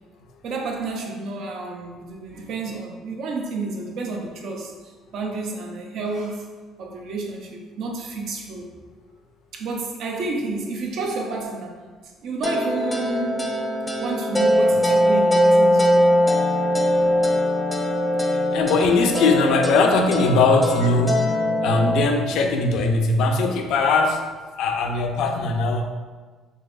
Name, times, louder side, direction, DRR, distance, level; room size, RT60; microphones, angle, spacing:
voice 1, 0.4-6.5 6.8-8.7 9.5-11.8 12.2-13.5 14.0-16.1, right 3 dB, 65° right, 1 dB, 0.6 m, -30 dB
sound 1, 12.4-22.0, equal, 15° left, 0.4 m, -21 dB
voice 2, 17.0-17.4 18.3-21.2 21.6-24.2 24.6-25.8, left 3 dB, 70° left, 4 dB, 0.4 m, -20 dB
3.9 x 2.8 x 2.5 m, 1.4 s
cardioid pair, 105°, 0 cm